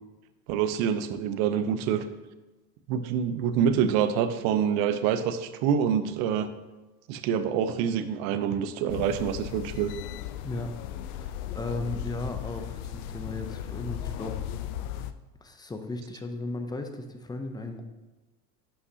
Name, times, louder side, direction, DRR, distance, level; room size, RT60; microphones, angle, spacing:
voice 1, 0.5-2.0 2.9-6.5 7.1-9.9, right 8 dB, 60° right, 10 dB, 0.8 m, -26 dB
sound 1, 8.9-15.1, left 11 dB, 65° left, 0.6 m, -36 dB
voice 2, 11.1-14.4 15.4-17.8, left 2 dB, 10° left, 6 dB, 0.5 m, -36 dB
11.5 x 5.6 x 2.8 m, 1.1 s
supercardioid pair, 110°, 49 cm